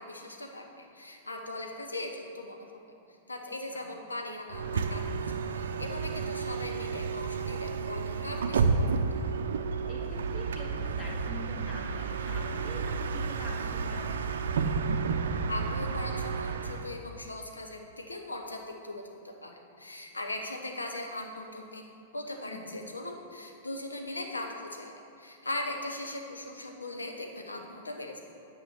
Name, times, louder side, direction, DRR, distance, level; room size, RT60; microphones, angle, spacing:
voice 1, 0.0-2.7 3.1-8.9 15.5-21.8 22.1-24.9 25.2-28.2, left 2 dB, 85° left, 2 dB, 1.0 m, -39 dB
Bus, 4.5-16.9, right 5 dB, 70° right, 0.5 m, -31 dB
voice 2, 9.9-14.2 22.5-22.8, left 2 dB, 35° left, -2 dB, 2.0 m, -44 dB
9.0 x 4.9 x 7.2 m, 2.8 s
figure-of-eight pair, 100°, 0 cm